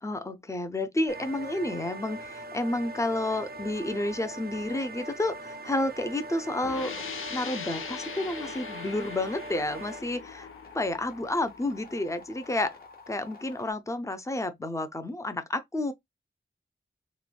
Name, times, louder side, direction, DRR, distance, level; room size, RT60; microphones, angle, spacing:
voice 1, 0.0-6.9 7.3-10.5 10.7-12.8 13.1-15.9, left 2 dB, 15° left, 0.4 m, -30 dB
sound 1, 1.1-10.0, right 2 dB, 50° right, 0.4 m, -41 dB
sound 2, 6.6-12.1, left 7 dB, 80° left, 0.4 m, -41 dB
sound 3, 6.9-13.7, left 4 dB, 45° left, 0.9 m, -50 dB
3.0 x 2.1 x 2.3 m
wide cardioid pair, 90°, 21 cm